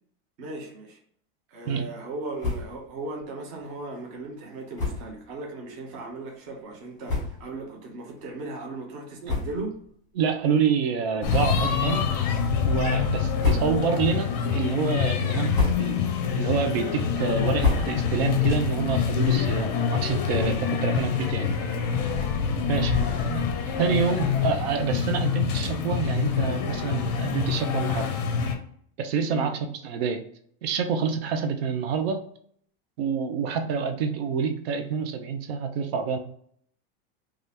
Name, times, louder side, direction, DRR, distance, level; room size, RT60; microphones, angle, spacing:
voice 1, 0.4-1.0 1.5-9.8 22.9-23.2 29.3-29.6, right 2 dB, 25° right, 0 dB, 0.5 m, -37 dB
sound 1, 2.4-2.9 3.2-3.3 3.6-3.7 4.7-5.2 5.9-6.0 6.7-6.8 7.0-7.6 8.1-8.3 9.2-9.9 10.2-10.4 11.2-11.8 12.3-12.7 13.2-14.1 14.4-14.9 15.3-16.1 16.5-18.3, left 4 dB, 10° left, 0.9 m, -29 dB
voice 2, 10.2-12.1 12.7-16.0 16.3-21.5 22.7-22.9 23.2-23.5 23.8-28.1 29.0-30.2 30.6-32.2 33.0-36.2, right 6 dB, 70° right, 7 dB, 0.6 m, -27 dB
sound 2, 11.2-28.6, left 7 dB, 40° left, 0.5 m, -26 dB
2.7 x 2.4 x 3.2 m, 0.63 s
supercardioid pair, 180°, 32 cm